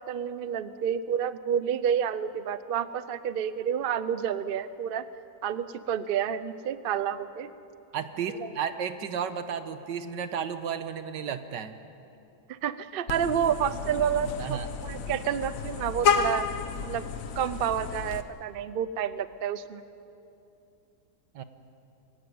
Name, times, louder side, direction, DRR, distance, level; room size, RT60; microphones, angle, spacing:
voice 1, 0.0-5.0 5.4-7.5 8.4-8.5 12.5-16.5 16.8-17.1 17.4-19.8, right 8 dB, 55° right, 14 dB, 0.6 m, -29 dB
voice 2, 7.9-11.8 14.4-14.7 21.3-21.4, right 7 dB, 85° right, 10 dB, 1.7 m, -33 dB
Vehicle horn car horn honking, 13.1-18.2, left 6 dB, 55° left, 1.2 m, -31 dB
22.5 x 17.0 x 9.5 m, 2.7 s
omnidirectional pair, 1.8 m